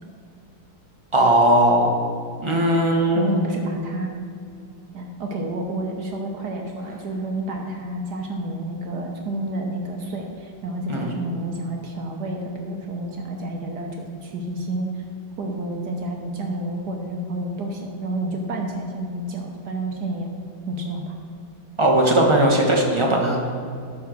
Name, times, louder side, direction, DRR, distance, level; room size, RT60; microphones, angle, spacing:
voice 1, 1.1-1.9 2.4-3.3 10.9-11.1 21.8-23.5, right 1 dB, 20° right, -1 dB, 0.8 m, -18 dB
voice 2, 3.1-4.1 4.9-14.9 15.4-20.3 20.7-21.1, right 1 dB, 55° right, 2 dB, 1.3 m, -30 dB
12.0 x 4.6 x 6.4 m, 2.5 s
omnidirectional pair, 2.4 m